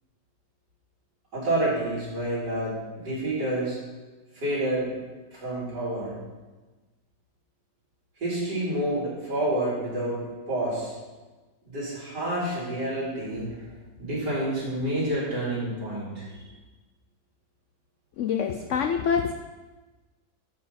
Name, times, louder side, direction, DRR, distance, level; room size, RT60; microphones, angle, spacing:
voice 1, 1.3-3.8 4.3-4.9 5.3-6.2 8.2-10.2 10.5-11.0 11.6-16.5, right 1 dB, 75° right, -8 dB, 4.3 m, -29 dB
voice 2, 18.2-19.3, left 7 dB, 90° left, 7 dB, 0.6 m, -25 dB
11.0 x 7.5 x 4.2 m, 1.2 s
omnidirectional pair, 1.9 m